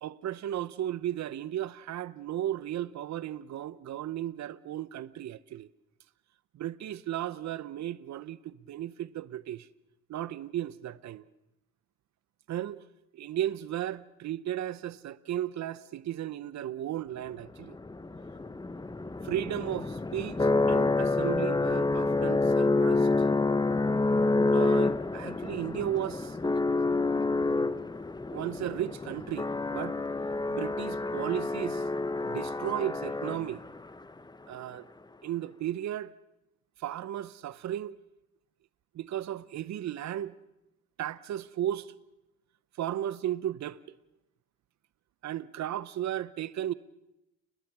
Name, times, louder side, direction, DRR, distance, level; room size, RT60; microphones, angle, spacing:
voice 1, 0.0-5.7 6.5-9.7 10.1-11.2 12.5-12.8 13.1-17.8 19.2-23.1 24.5-26.4 28.3-30.0 30.5-31.8 32.2-33.6 34.5-34.9 35.2-36.1 36.8-37.9 38.9-40.3 41.0-41.9 42.8-43.8 45.2-46.7, right 12 dB, 65° right, 0.9 m, -35 dB
sound 1, 17.6-33.8, left 3 dB, 15° left, 0.9 m, -28 dB
30.0 x 20.5 x 6.1 m
cardioid pair, 90°, 30 cm